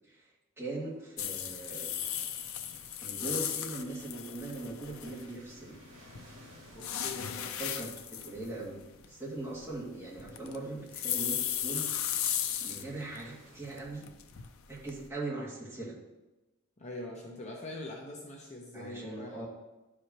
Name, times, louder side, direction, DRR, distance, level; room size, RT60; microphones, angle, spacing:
voice 1, 0.6-2.0 3.0-5.8 7.2-8.8 9.1-11.9 12.3-14.1 14.7-16.0 18.7-19.5, right 2 dB, 10° right, -8 dB, 2.3 m, -40 dB
sound 1, 0.7-13.8, equal, 40° right, 2.0 m, -60 dB
sound 2, 1.2-5.5 6.1-13.2 13.6-15.1, left 10 dB, 75° left, 0.6 m, -36 dB
voice 2, 6.7-7.3 16.8-19.5, left 2 dB, 35° left, -2 dB, 1.0 m, -43 dB
11.5 x 5.0 x 3.0 m, 1.1 s
head